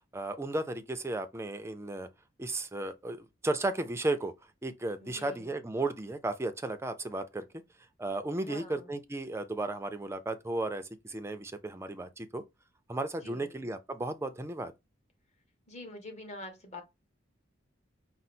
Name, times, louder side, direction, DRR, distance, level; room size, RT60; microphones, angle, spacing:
voice 1, 0.1-2.1 2.4-4.3 4.6-7.5 8.0-12.4 12.9-14.7, right 2 dB, 15° right, 0.4 m, -34 dB
voice 2, 5.0-5.6 8.4-8.9 13.2-13.7 15.7-16.8, left 1 dB, 35° left, 1.1 m, -46 dB
5.0 x 2.0 x 4.2 m
head